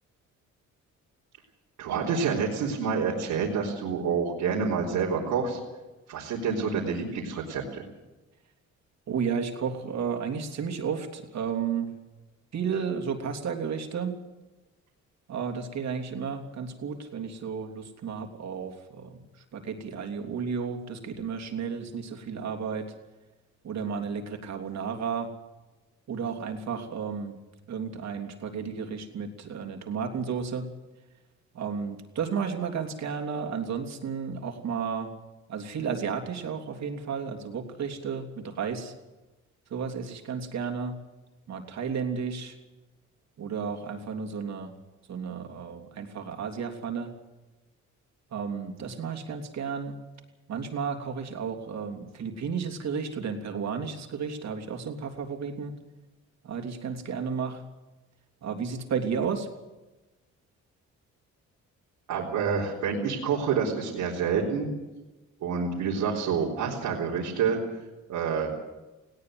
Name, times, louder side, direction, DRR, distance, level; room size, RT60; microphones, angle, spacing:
voice 1, 1.8-5.6 6.1-7.8 62.1-64.7 65.4-67.6 68.1-68.5, right 6 dB, 85° right, -4 dB, 3.9 m, -28 dB
voice 2, 9.1-11.9 12.5-14.2 15.3-19.2 19.5-22.9 23.6-25.3 26.1-27.4 27.7-30.7 31.5-35.1 35.5-38.9 39.7-40.9 41.5-42.6 43.4-44.7 45.1-47.1 48.3-50.0 50.5-55.7 56.4-57.6 58.4-59.5, right 6 dB, 60° right, 4 dB, 3.3 m, -32 dB
19.5 x 17.5 x 7.9 m, 1.1 s
cardioid pair, 90°, 30 cm